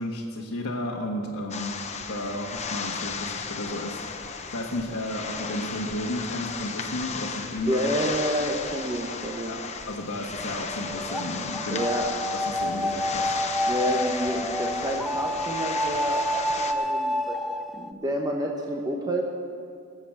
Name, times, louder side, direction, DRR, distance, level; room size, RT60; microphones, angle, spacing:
voice 1, 0.0-1.8 2.1-4.0 4.5-7.8 9.5-9.6 9.9-11.9 12.5-13.3, left 1 dB, 65° left, -4 dB, 1.5 m, -32 dB
sound 1, 1.5-16.7, left 5 dB, 30° left, 0.9 m, -35 dB
voice 2, 7.7-9.5 11.7-12.0 13.7-17.4 17.7-19.2, equal, 20° right, 0 dB, 1.0 m, -29 dB
sound 2, 10.3-17.9, equal, ahead, 0.4 m, -29 dB
20.0 x 8.0 x 7.4 m, 2.4 s
head